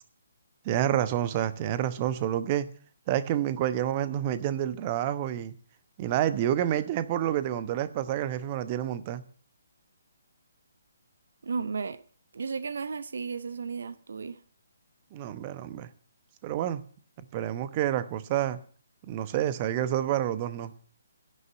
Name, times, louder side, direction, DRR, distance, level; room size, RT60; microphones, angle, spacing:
voice 1, 0.6-2.7 3.1-5.5 6.0-9.2 15.1-15.9 16.4-16.8 17.3-18.6 19.1-20.7, right 11 dB, 30° right, 1.0 m, -28 dB
voice 2, 11.4-12.0 12.3-14.4, right 5 dB, 60° right, 0.8 m, -34 dB
10.5 x 6.9 x 9.2 m
figure-of-eight pair, 140°, 0 cm